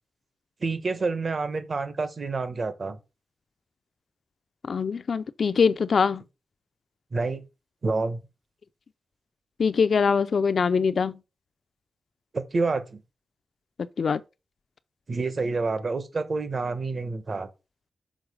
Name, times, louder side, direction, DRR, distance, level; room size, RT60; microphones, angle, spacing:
voice 1, 0.6-3.0 7.1-7.4 7.8-8.2 12.3-13.0 15.1-17.5, right 3 dB, 45° right, 1.0 m, -28 dB
voice 2, 4.7-6.2 9.6-11.2 14.0-14.2, left 5 dB, 60° left, 0.4 m, -23 dB
6.3 x 4.7 x 4.8 m
wide cardioid pair, 125°, 0 cm